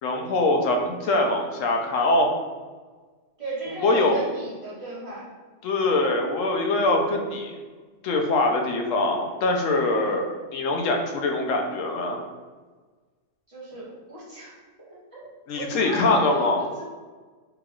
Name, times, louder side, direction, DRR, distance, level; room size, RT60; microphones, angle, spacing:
voice 1, 0.0-2.3 3.8-4.2 5.6-7.5 8.0-12.2 15.5-16.6, left 2 dB, 75° left, 2 dB, 0.9 m, -23 dB
voice 2, 3.4-5.3 10.0-10.1 13.5-16.8, right 2 dB, 25° right, -10 dB, 1.4 m, -36 dB
3.8 x 3.3 x 2.3 m, 1.4 s
omnidirectional pair, 1.4 m